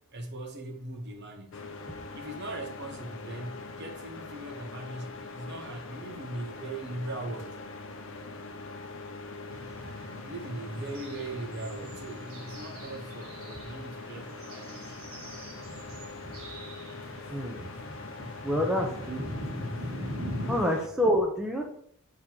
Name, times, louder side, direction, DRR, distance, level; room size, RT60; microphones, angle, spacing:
voice 1, 0.1-1.7 2.1-7.6 10.2-15.0, right 2 dB, 50° right, 1.0 m, -40 dB
sound 1, 1.5-20.9, left 3 dB, 60° left, 0.7 m, -43 dB
sound 2, 9.5-20.6, equal, 70° right, 1.8 m, -41 dB
voice 2, 17.3-17.7 18.4-19.2 20.5-21.7, equal, 5° right, 0.8 m, -27 dB
7.4 x 3.9 x 4.4 m
head